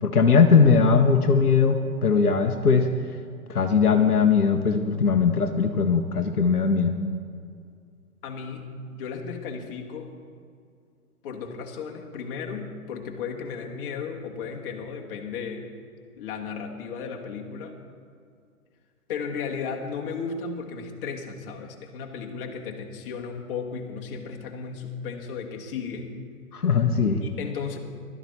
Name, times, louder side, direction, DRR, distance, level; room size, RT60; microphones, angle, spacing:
voice 1, 0.0-2.9 3.5-6.9 26.5-27.2, left 5 dB, 80° left, 5 dB, 1.1 m, -20 dB
voice 2, 8.2-10.1 11.2-15.7 16.2-17.8 19.1-26.1 27.2-27.8, left 5 dB, 40° left, 1 dB, 1.7 m, -35 dB
16.0 x 12.5 x 4.2 m, 2.2 s
figure-of-eight pair, 120°, 45 cm